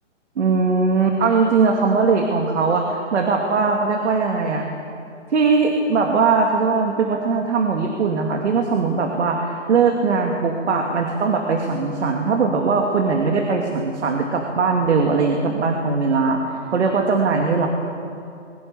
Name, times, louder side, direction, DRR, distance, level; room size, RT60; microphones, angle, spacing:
voice 1, 0.4-4.7 5.3-16.4 16.7-17.7, right 4 dB, 65° right, 2 dB, 2.5 m, -20 dB
22.0 x 21.5 x 7.1 m, 2.6 s
hypercardioid pair, 150°, 37 cm